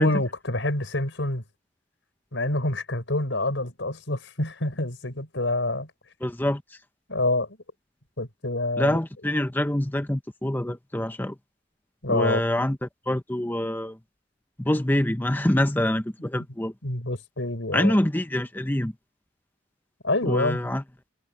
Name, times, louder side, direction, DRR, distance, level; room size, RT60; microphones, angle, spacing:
voice 1, 0.0-1.4 2.3-5.9 7.1-7.5 8.2-9.0 12.0-12.4 16.3-16.4 16.8-18.0 20.0-20.6, left 2 dB, 85° left, 4.7 m, -27 dB
voice 2, 6.2-6.6 8.8-11.4 12.1-14.0 14.6-16.7 17.7-18.9 20.2-20.8, left 1 dB, 10° left, 0.8 m, -25 dB
head